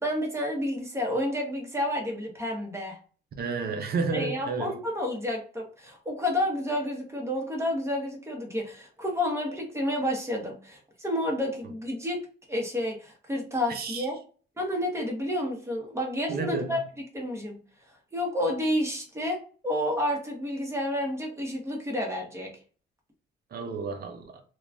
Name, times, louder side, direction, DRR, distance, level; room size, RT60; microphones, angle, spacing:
voice 1, 0.0-3.0 4.1-12.2 12.5-14.2 14.6-16.8 17.1-17.6 18.1-22.5, left 1 dB, 15° right, 1.0 m, -30 dB
voice 2, 3.4-4.7 11.6-11.7 13.7-14.1 16.3-16.8 23.5-24.4, right 4 dB, 50° right, 0.6 m, -31 dB
2.9 x 2.3 x 2.4 m
cardioid pair, 90°, 20 cm